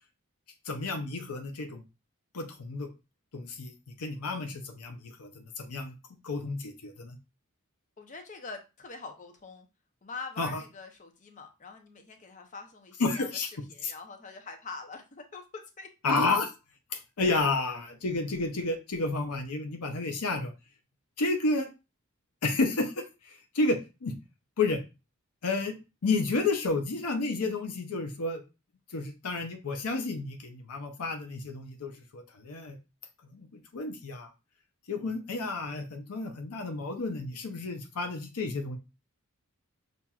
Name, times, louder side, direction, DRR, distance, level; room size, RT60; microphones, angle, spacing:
voice 1, 0.7-1.8 2.3-2.9 3.3-3.7 4.0-5.9 6.2-7.2 10.4-10.6 13.0-13.5 13.8-13.9 16.0-16.5 16.9-20.5 21.2-21.7 22.4-24.1 24.6-24.8 25.4-25.7 26.0-28.4 28.9-32.8 33.3-34.3 34.9-38.8, left 3 dB, 90° left, 5 dB, 0.7 m, -31 dB
voice 2, 8.0-9.7 10.0-13.3 13.7-15.9 16.2-16.3, left 4 dB, 35° left, 6 dB, 0.6 m, -44 dB
5.7 x 2.5 x 2.3 m, 0.28 s
head